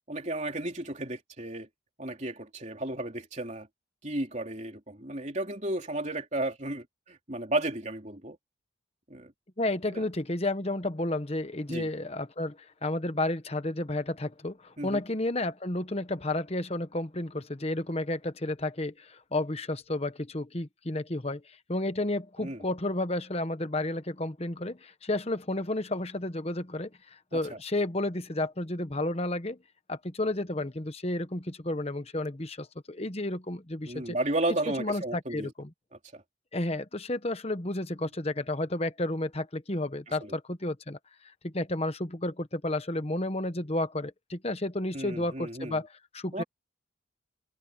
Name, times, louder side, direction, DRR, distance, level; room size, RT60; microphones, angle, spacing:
voice 1, 0.1-1.7 2.0-3.7 4.0-8.4 9.1-9.3 9.9-10.0 11.7-11.9 14.8-15.0 22.4-22.6 27.3-27.6 33.9-35.5 36.1-36.2 40.2-40.3 44.9-45.8 46.3-46.4, right 1 dB, 35° right, 3.7 m, -33 dB
voice 2, 9.6-21.4 21.7-29.6 29.9-34.1 34.8-35.7 36.5-41.0 41.4-46.4, left 1 dB, 30° left, 1.2 m, -32 dB
head